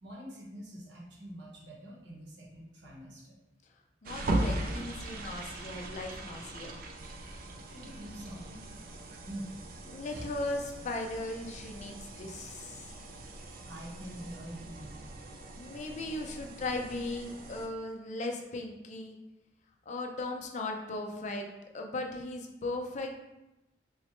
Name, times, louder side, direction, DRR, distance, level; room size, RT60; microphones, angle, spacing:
voice 1, 0.0-3.4 7.6-8.8 9.3-9.5 10.1-10.3 13.6-15.0, right 1 dB, 70° right, -3 dB, 0.9 m, -45 dB
voice 2, 4.0-6.8 9.9-13.0 15.6-19.2 19.9-21.5 21.7-23.1, left 2 dB, 40° left, 3 dB, 0.4 m, -37 dB
sound 1, 4.1-17.7, right 1 dB, 55° right, 0.4 m, -39 dB
3.9 x 2.1 x 2.9 m, 0.96 s
head